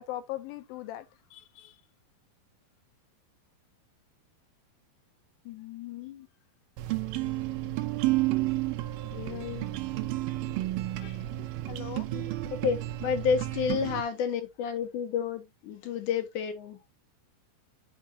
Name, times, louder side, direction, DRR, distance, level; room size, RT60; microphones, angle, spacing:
voice 1, 0.0-1.8 8.8-9.2 11.0-12.1, left 14 dB, 85° left, 2.5 m, -41 dB
voice 2, 5.5-6.3 9.0-9.8 12.1-16.8, left 7 dB, 65° left, 2.4 m, -31 dB
sound 1, 6.8-14.0, right 17 dB, 80° right, 2.5 m, -31 dB
6.4 x 6.0 x 2.8 m
omnidirectional pair, 4.2 m